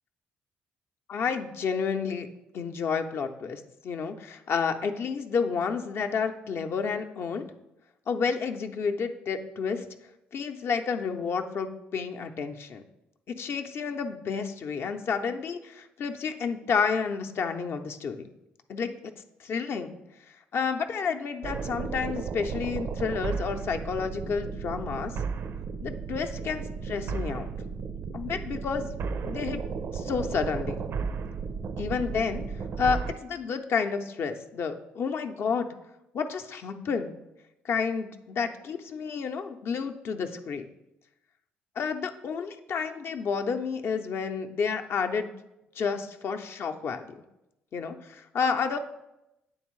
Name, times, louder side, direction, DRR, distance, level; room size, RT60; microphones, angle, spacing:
voice 1, 1.1-2.3 2.5-7.5 8.1-9.8 10.3-12.8 13.3-18.3 18.7-19.1 19.4-20.0 20.5-25.1 25.8-27.5 28.1-28.9 29.2-29.6 29.9-30.8 31.8-32.4 32.8-35.7 36.1-37.1 37.6-40.7 41.8-45.3 45.8-47.0 47.7-48.8, left 5 dB, 55° left, 5 dB, 0.6 m, -30 dB
sound 1, 21.4-33.1, right 5 dB, 55° right, 0.4 m, -34 dB
9.3 x 3.6 x 3.1 m, 0.91 s
hypercardioid pair, 50°, 5 cm